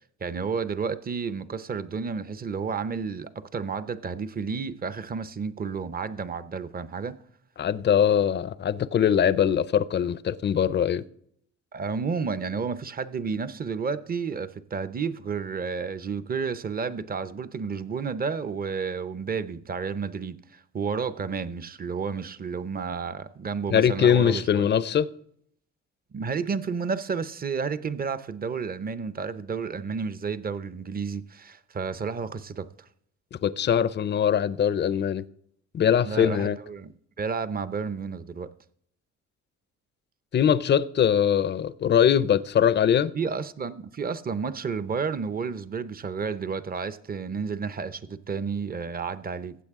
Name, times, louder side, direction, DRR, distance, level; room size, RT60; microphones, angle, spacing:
voice 1, 0.2-7.2 11.7-24.7 26.1-32.7 36.0-36.9 37.2-38.5 43.1-49.6, right 5 dB, 30° right, 0.7 m, -31 dB
voice 2, 7.6-11.0 23.7-25.1 33.3-35.2 35.7-36.6 40.3-43.1, left 8 dB, 35° left, 0.5 m, -22 dB
15.5 x 8.0 x 3.6 m
cardioid pair, 90°, 30 cm